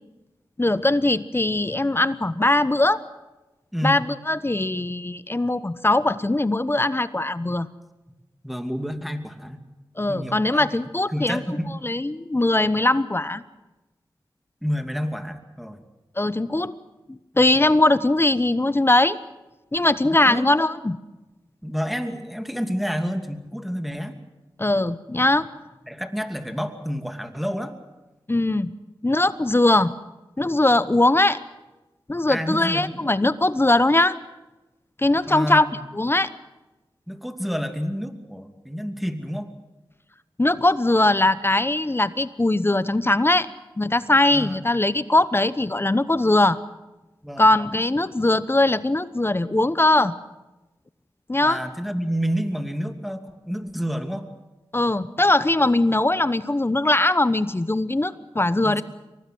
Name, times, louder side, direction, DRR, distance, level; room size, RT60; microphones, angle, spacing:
voice 1, 0.6-3.0 3.8-7.7 10.0-11.4 11.8-13.4 16.2-16.7 17.4-19.2 19.7-21.0 24.6-25.5 28.3-28.7 29.0-29.9 30.4-31.4 32.1-34.1 35.0-35.7 35.9-36.3 40.4-43.5 43.8-46.6 47.4-50.1 51.3-51.6 54.7-58.8, left 2 dB, 25° left, 15 dB, 0.9 m, -20 dB
voice 2, 8.4-9.6 10.1-10.7 11.1-11.8 14.6-15.8 20.2-20.5 21.6-24.1 25.9-27.7 32.3-33.1 35.3-35.8 37.1-39.5 44.3-44.6 47.2-47.5 51.4-54.3 58.6-58.8, equal, ahead, 7 dB, 2.7 m, -29 dB
23.5 x 19.0 x 7.7 m, 1.1 s
cardioid pair, 40°, 9 cm